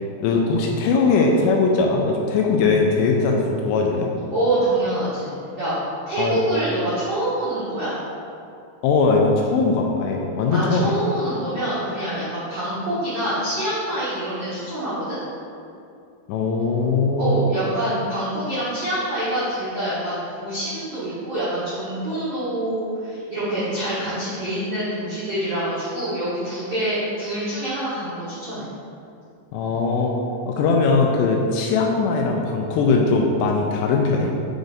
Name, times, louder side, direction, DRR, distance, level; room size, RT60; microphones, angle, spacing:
voice 1, 0.2-4.1 6.2-6.4 8.8-11.0 16.3-17.4 29.5-30.2 30.5-34.4, left 4 dB, 85° left, 0 dB, 2.6 m, -20 dB
voice 2, 4.3-5.3 5.6-5.7 6.1-7.9 10.5-15.2 17.2-28.7, right 1 dB, 85° right, -12 dB, 1.3 m, -26 dB
8.0 x 5.2 x 2.6 m, 2.6 s
omnidirectional pair, 5.2 m